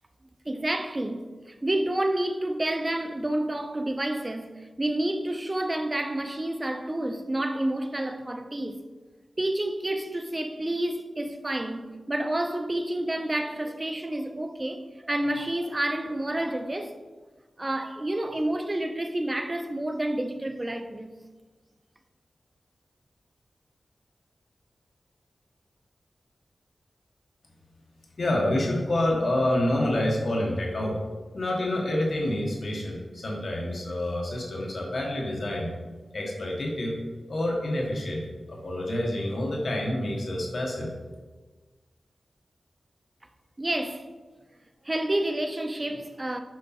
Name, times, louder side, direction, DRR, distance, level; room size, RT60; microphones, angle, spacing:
voice 1, 0.5-8.8 9.4-17.0 17.6-21.1 43.6-44.1 44.8-46.4, right 1 dB, 25° right, 0.6 m, -29 dB
voice 2, 28.2-31.0 31.3-35.7 36.1-37.0 37.3-38.2 38.5-40.9, left 1 dB, 60° left, 1.3 m, -27 dB
6.4 x 5.3 x 4.2 m
wide cardioid pair, 90°, 0 cm